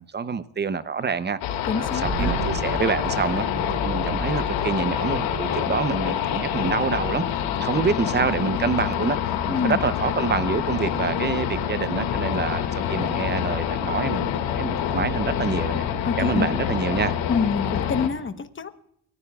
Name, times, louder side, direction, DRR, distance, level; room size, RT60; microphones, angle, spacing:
voice 1, 0.0-1.4 1.8-3.5 3.8-12.6 12.9-15.8 16.2-17.1, right 5 dB, 20° right, 0.7 m, -27 dB
sound 1, 1.4-18.1, left 9 dB, 80° left, 2.1 m, -26 dB
voice 2, 1.7-2.4 9.5-9.8 16.0-16.5 17.3-18.7, left 5 dB, 25° left, 1.1 m, -26 dB
sound 2, 2.0-17.7, right 3 dB, 45° right, 4.4 m, -37 dB
29.5 x 15.0 x 2.4 m
cardioid pair, 120°, 46 cm